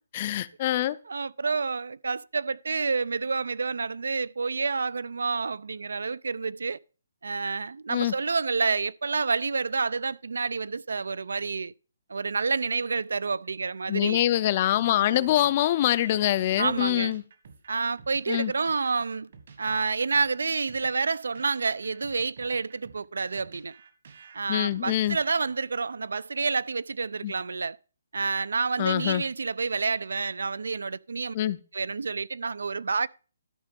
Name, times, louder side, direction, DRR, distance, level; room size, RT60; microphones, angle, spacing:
voice 1, 0.1-1.0 7.9-8.1 13.9-17.2 18.3-18.5 24.5-25.2 27.2-27.3 28.8-29.2 31.3-31.6, left 13 dB, 25° left, 0.4 m, -24 dB
voice 2, 0.7-6.8 7.2-11.7 12.1-14.2 14.8-15.3 16.6-17.1 17.7-19.3 19.6-23.7 24.3-27.8 28.1-31.3 31.7-33.1, right 4 dB, 85° right, 0.4 m, -29 dB
sound 1, 14.8-25.5, right 5 dB, 50° right, 1.6 m, -52 dB
12.5 x 5.0 x 5.2 m
hypercardioid pair, 170°, 0 cm